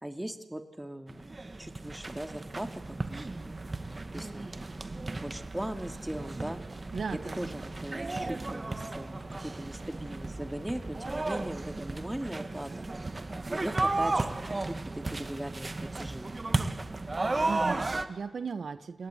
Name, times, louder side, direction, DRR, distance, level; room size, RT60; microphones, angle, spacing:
voice 1, 0.0-1.2 1.6-3.0 4.1-4.8 5.2-6.6 7.1-12.9 13.5-14.4 14.6-16.3, right 1 dB, 10° right, 7 dB, 2.5 m, -39 dB
sound 1, 1.1-18.1, right 2 dB, 40° right, 1.8 m, -34 dB
voice 2, 6.9-7.6 17.4-19.1, right 5 dB, 80° right, 12 dB, 1.1 m, -36 dB
28.0 x 18.0 x 9.3 m, 1.2 s
cardioid pair, 50°, 0 cm